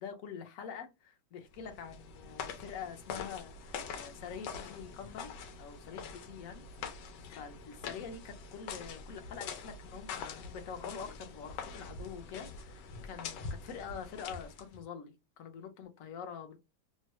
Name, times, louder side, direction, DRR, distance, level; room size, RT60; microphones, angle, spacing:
voice 1, 0.0-5.3 5.6-7.0 7.4-16.6, left 7 dB, 60° left, 1.0 m, -46 dB
sound 1, 1.5-14.8, left 5 dB, 85° left, 1.3 m, -44 dB
3.0 x 2.2 x 2.8 m
omnidirectional pair, 1.9 m